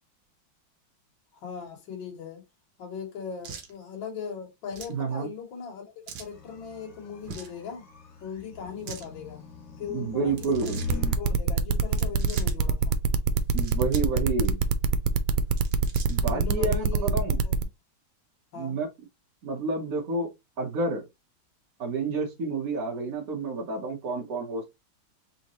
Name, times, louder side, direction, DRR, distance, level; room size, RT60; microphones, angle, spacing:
voice 1, 1.3-2.4 2.8-5.9 6.2-7.8 8.2-9.4 9.8-10.3 10.7-13.0 16.3-17.6 18.5-18.8, left 6 dB, 65° left, 2.1 m, -39 dB
sound 1, 3.4-3.7 4.7-5.0 6.1-6.3 7.2-7.6 8.7-9.1 10.3-11.0 11.8-12.6 13.4-14.1 14.4-14.5 15.4-16.3, right 6 dB, 70° right, 1.7 m, -43 dB
voice 2, 4.9-5.3 9.9-10.8 13.5-14.6 16.1-17.4 18.6-18.9 19.4-20.3 20.6-21.0 21.8-24.6, right 3 dB, 50° right, 1.4 m, -29 dB
sound 2, 6.3-11.2, left 3 dB, 45° left, 1.5 m, -41 dB
sound 3, 10.9-17.6, right 7 dB, 90° right, 1.4 m, -24 dB
4.3 x 3.5 x 3.0 m
omnidirectional pair, 2.2 m